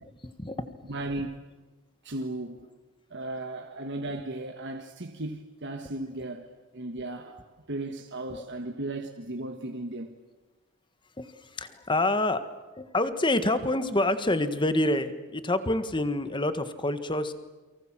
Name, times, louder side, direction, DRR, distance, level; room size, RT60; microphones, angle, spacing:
voice 1, 0.2-0.7 8.3-8.4 11.2-12.5 12.8-17.3, left 1 dB, 20° left, 1.5 m, -27 dB
voice 2, 0.9-1.3 2.0-2.7 3.1-7.4 7.7-10.1, right 2 dB, 55° right, 1.6 m, -36 dB
29.5 x 24.0 x 7.5 m
head